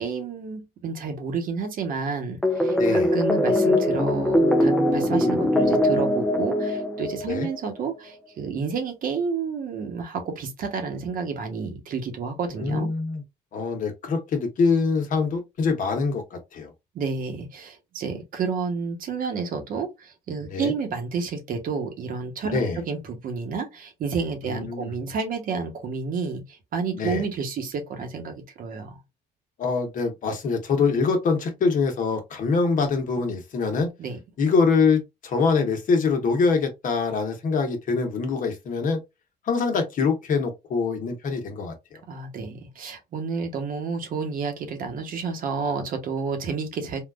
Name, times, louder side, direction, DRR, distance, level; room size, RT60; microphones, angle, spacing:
voice 1, 0.0-12.9 16.9-29.0 34.0-34.2 42.1-47.0, right 5 dB, 55° right, 1.0 m, -30 dB
sound 1, 2.4-7.6, left 1 dB, 5° left, 0.5 m, -22 dB
voice 2, 2.8-3.1 7.3-7.5 12.6-13.2 13.5-16.7 20.5-20.7 22.5-22.8 24.4-24.9 26.9-27.2 29.6-33.9 34.4-39.0 39.5-41.7, left 4 dB, 50° left, 1.1 m, -24 dB
3.6 x 2.4 x 2.4 m
cardioid pair, 110°, 17 cm